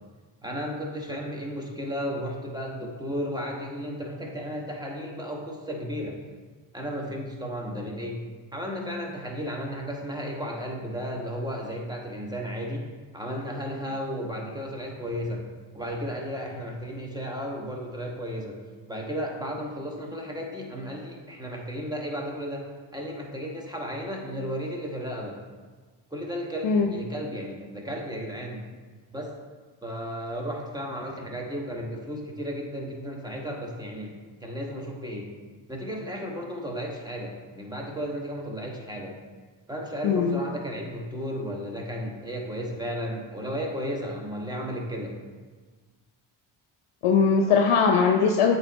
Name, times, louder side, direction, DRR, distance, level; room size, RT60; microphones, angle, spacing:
voice 1, 0.4-6.2 6.7-8.2 8.5-12.9 13.1-15.5 15.7-18.6 18.9-25.4 26.1-28.6 29.1-29.3 29.8-34.1 34.4-35.3 35.7-39.2 39.7-45.2, equal, 10° right, -1 dB, 1.3 m, -34 dB
voice 2, 40.0-40.4 47.0-48.6, left 5 dB, 80° left, 3 dB, 0.6 m, -20 dB
8.1 x 3.3 x 4.0 m, 1.4 s
cardioid pair, 50°, 50 cm